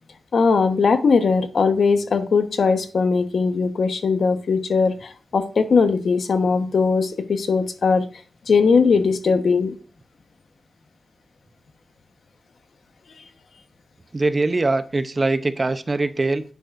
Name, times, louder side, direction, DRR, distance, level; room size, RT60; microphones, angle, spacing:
voice 1, 0.3-8.0 8.5-9.8, left 5 dB, 70° left, 8 dB, 1.1 m, -19 dB
voice 2, 14.1-16.4, right 2 dB, 30° right, 12 dB, 0.6 m, -22 dB
11.0 x 9.3 x 2.5 m, 0.38 s
wide cardioid pair, 145°, 0 cm